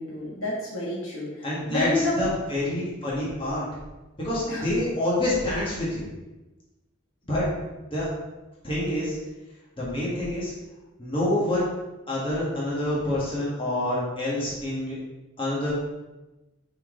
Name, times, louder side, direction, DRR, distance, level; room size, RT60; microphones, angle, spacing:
voice 1, 0.0-2.3 4.5-4.7, left 2 dB, 80° left, -6 dB, 1.7 m, -29 dB
voice 2, 1.4-1.9 2.2-3.6 4.2-6.1 7.3-7.5 7.9-8.1 8.6-9.2 9.8-10.5 11.0-11.7 12.1-14.9 15.4-15.7, left 1 dB, 25° left, -7 dB, 1.7 m, -27 dB
5.8 x 4.5 x 3.8 m, 1.1 s
head